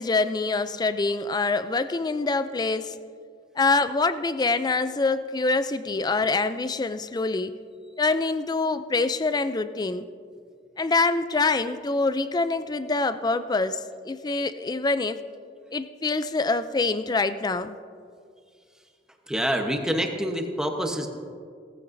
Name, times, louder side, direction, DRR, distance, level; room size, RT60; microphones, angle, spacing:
voice 1, 0.0-3.0 3.6-7.5 8.0-10.1 10.8-15.2 15.7-17.8, left 3 dB, 20° left, 12 dB, 0.4 m, -25 dB
voice 2, 19.3-21.1, equal, 5° right, 3 dB, 1.0 m, -26 dB
17.5 x 14.5 x 2.7 m, 2.2 s
head